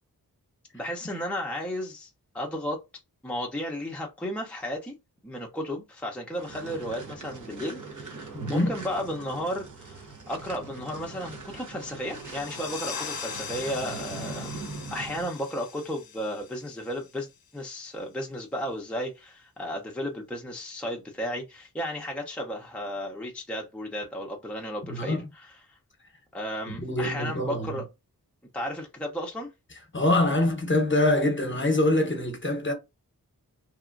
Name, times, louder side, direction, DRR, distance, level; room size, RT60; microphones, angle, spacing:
voice 1, 0.7-2.1 2.3-2.8 3.2-4.9 5.2-17.3 17.5-25.8 26.3-27.8 28.5-29.5, equal, 5° left, 0.6 m, -34 dB
sound 1, 6.3-15.3, right 3 dB, 55° right, 0.9 m, -41 dB
voice 2, 8.3-8.7 24.8-25.3 26.7-27.8 29.9-32.7, left 1 dB, 30° left, 0.9 m, -25 dB
sound 2, 12.0-17.4, left 7 dB, 70° left, 0.5 m, -41 dB
2.9 x 2.3 x 2.4 m
wide cardioid pair, 65°, 37 cm